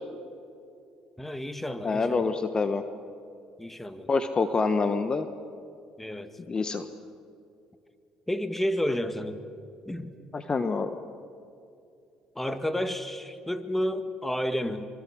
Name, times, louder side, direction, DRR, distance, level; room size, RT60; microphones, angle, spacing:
voice 1, 1.2-2.3 3.6-4.1 6.0-6.3 8.3-9.4 9.9-10.2 12.4-14.9, equal, 10° left, 9 dB, 1.9 m, -31 dB
voice 2, 1.8-2.8 4.1-5.3 6.5-6.8 10.3-11.0, left 4 dB, 35° left, 9 dB, 1.3 m, -26 dB
25.5 x 24.5 x 6.4 m, 2.6 s
supercardioid pair, 75°, 3 cm